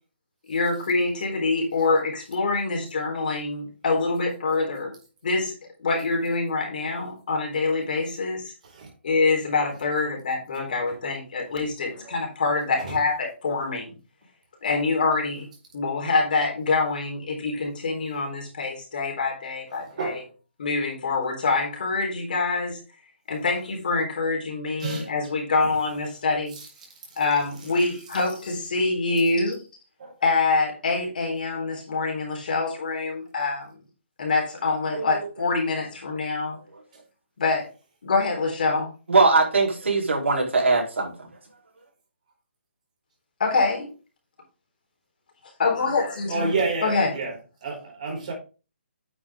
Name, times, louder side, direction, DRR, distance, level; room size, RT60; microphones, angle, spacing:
voice 1, 0.5-4.9 5.2-5.5 5.8-8.5 9.0-13.9 14.6-15.5 15.7-20.2 20.6-22.8 23.3-26.6 27.2-29.6 30.2-33.7 34.2-36.6 37.4-37.7 38.0-38.9 43.4-43.9 45.6-46.5 46.8-47.1, left 3 dB, 45° left, 3.8 m, -25 dB
voice 2, 19.7-20.2 24.8-25.1 25.6-25.8 26.5-27.2 30.0-30.2 36.9-37.0 46.3-47.4 47.6-48.3, right 3 dB, 35° right, 4.5 m, -31 dB
voice 3, 39.1-41.3, right 3 dB, 80° right, 4.2 m, -21 dB
9.3 x 6.6 x 3.6 m
hypercardioid pair, 175°, 7 cm